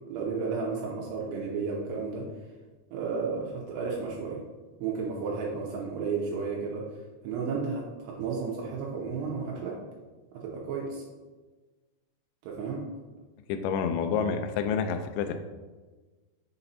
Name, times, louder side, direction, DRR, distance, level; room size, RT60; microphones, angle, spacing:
voice 1, 0.1-2.3 2.9-4.4 4.8-6.8 7.2-9.7 10.4-11.0 12.4-12.8, right 5 dB, 80° right, -3 dB, 2.9 m, -32 dB
voice 2, 13.5-15.4, left 6 dB, 85° left, 7 dB, 2.3 m, -28 dB
6.7 x 4.2 x 4.1 m, 1.3 s
omnidirectional pair, 4.9 m